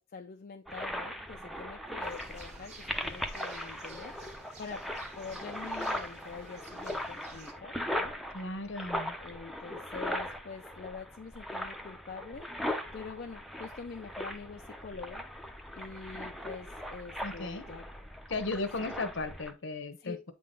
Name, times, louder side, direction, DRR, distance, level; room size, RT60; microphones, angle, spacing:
voice 1, 0.0-4.1 4.6-4.8 5.2-8.1 9.2-12.5 12.9-15.2 15.8-17.8 20.0-20.2, left 5 dB, 50° left, 0.5 m, -45 dB
sound 1, 0.7-19.5, equal, ahead, 0.6 m, -39 dB
sound 2, 2.0-7.5, right 3 dB, 35° right, 1.3 m, -53 dB
voice 2, 8.3-9.2 17.2-17.7 18.3-20.3, left 3 dB, 65° left, 1.0 m, -36 dB
8.4 x 3.9 x 3.8 m
head